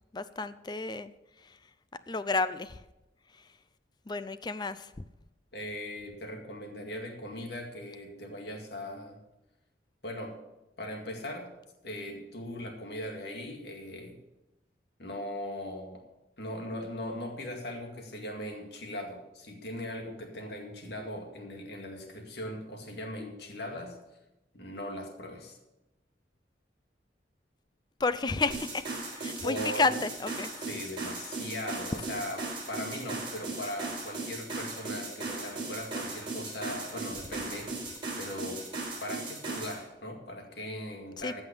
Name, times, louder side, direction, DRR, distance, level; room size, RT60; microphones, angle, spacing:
voice 1, 0.1-1.1 2.1-2.8 4.1-4.9 28.0-28.8 29.2-30.5 41.2-41.4, left 3 dB, 25° left, 14 dB, 0.4 m, -31 dB
voice 2, 5.5-9.2 10.0-10.4 10.8-11.5 11.8-14.2 15.0-16.0 16.4-24.0 24.5-25.6 29.4-29.9 30.6-37.7 38.2-38.6 39.0-41.4, left 1 dB, 65° left, 3 dB, 2.1 m, -39 dB
sound 1, 28.5-39.8, right 3 dB, 30° right, 4.2 m, -37 dB
14.5 x 5.8 x 6.9 m, 0.96 s
head